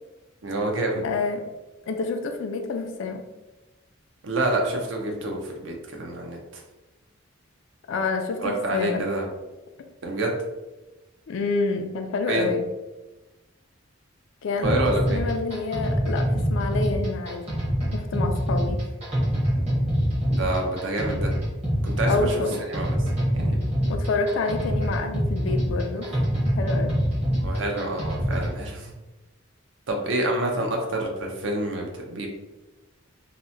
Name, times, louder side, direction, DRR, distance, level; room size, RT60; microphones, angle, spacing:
voice 1, 0.4-1.0 4.2-6.4 8.4-9.3 10.0-10.3 12.3-12.5 14.6-15.2 20.3-21.3 21.8-22.4 22.7-22.9 23.3-23.6 27.4-28.9 29.9-32.3, right 2 dB, 60° right, 1 dB, 0.5 m, -27 dB
voice 2, 1.0-1.4 1.9-3.2 7.9-9.1 11.3-12.7 14.4-17.5 17.9-18.9 22.1-22.6 23.9-26.1 26.4-27.0, left 4 dB, 65° left, 5 dB, 0.3 m, -28 dB
sound 1, 14.6-28.6, equal, 30° right, 0.8 m, -25 dB
2.8 x 2.1 x 2.6 m, 1.1 s
head